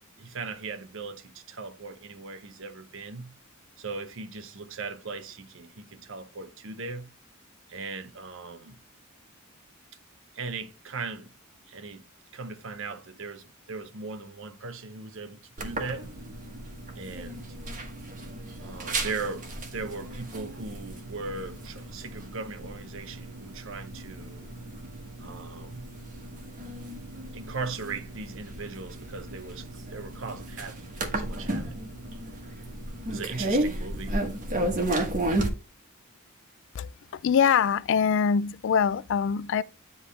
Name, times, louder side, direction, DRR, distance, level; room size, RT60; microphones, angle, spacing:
voice 1, 0.2-3.4 3.8-7.1 7.7-8.8 10.3-11.3 11.7-12.0 12.3-16.1 17.0-17.4 18.6-24.5 25.2-26.0 27.3-30.9 31.1-31.8 33.1-34.2, right 4 dB, 65° right, 0.8 m, -38 dB
sound 1, 15.6-35.5, right 1 dB, 40° right, 1.3 m, -34 dB
voice 2, 37.2-39.6, left 7 dB, 60° left, 0.4 m, -23 dB
9.7 x 3.5 x 3.2 m
head